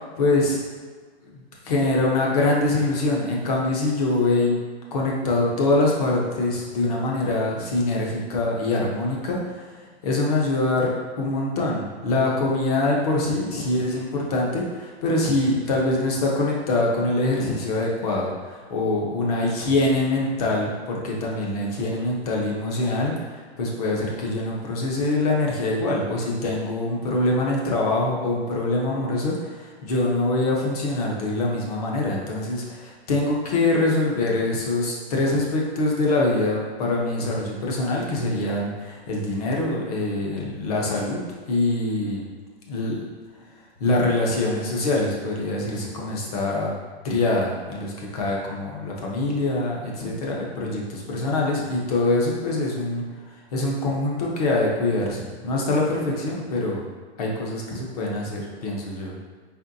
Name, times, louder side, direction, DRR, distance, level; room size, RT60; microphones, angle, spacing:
voice 1, 0.2-0.6 1.3-4.6 4.9-9.4 10.0-41.2 41.5-42.2 42.7-43.0 43.8-46.8 47.0-53.0 53.5-56.8 57.2-59.2, left 2 dB, 35° left, -2 dB, 0.7 m, -24 dB
4.3 x 3.1 x 2.6 m, 1.5 s
hypercardioid pair, 165°, 33 cm